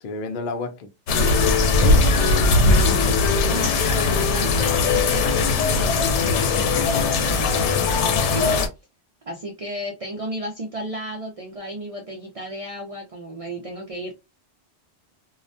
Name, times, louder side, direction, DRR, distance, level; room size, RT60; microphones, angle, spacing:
voice 1, 0.0-1.4 1.8-3.2, left 3 dB, 60° left, 0.6 m, -32 dB
sound 1, 1.1-8.7, left 3 dB, 85° left, 0.9 m, -19 dB
voice 2, 3.5-8.6 9.3-14.1, right 1 dB, 50° right, 0.4 m, -33 dB
2.3 x 2.1 x 2.5 m
omnidirectional pair, 1.2 m